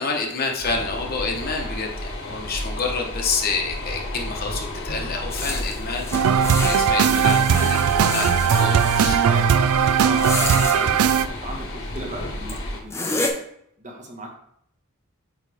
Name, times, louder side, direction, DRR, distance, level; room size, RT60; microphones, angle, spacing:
voice 1, 0.0-6.1 6.6-9.2, left 4 dB, 45° left, 2 dB, 1.0 m, -28 dB
sound 1, 0.6-12.8, left 1 dB, 65° left, 1.4 m, -32 dB
sound 2, 5.3-9.0 10.0-10.8 12.0-12.1 12.5-12.6 12.9-13.3, left 2 dB, 15° left, 0.6 m, -30 dB
sound 3, 6.1-11.3, right 7 dB, 85° right, 0.3 m, -19 dB
voice 2, 9.0-9.5 10.0-10.3 10.6-13.4 13.8-14.4, right 1 dB, 35° right, 1 dB, 1.1 m, -37 dB
8.4 x 3.2 x 3.4 m, 0.70 s
head